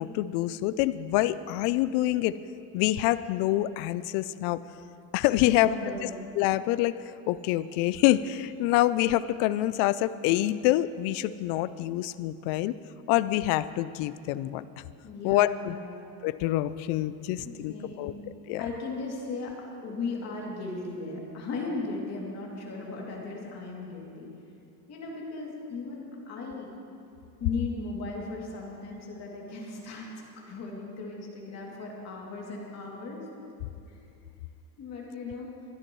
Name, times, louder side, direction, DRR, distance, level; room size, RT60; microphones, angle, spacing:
voice 1, 0.0-2.4 2.7-4.6 5.1-6.1 6.4-7.0 7.3-12.7 13.1-14.7 15.2-15.8 16.2-18.1 18.5-18.7, left 15 dB, 75° left, 15 dB, 0.5 m, -26 dB
voice 2, 5.4-6.2 15.0-16.0 17.2-18.2 18.6-19.5 19.8-24.3 24.9-26.7 27.4-30.1 30.5-33.2 33.9-34.0 34.8-35.5, left 3 dB, 40° left, -2 dB, 2.7 m, -37 dB
23.5 x 10.5 x 3.1 m, 2.6 s
cardioid pair, 150°, 41 cm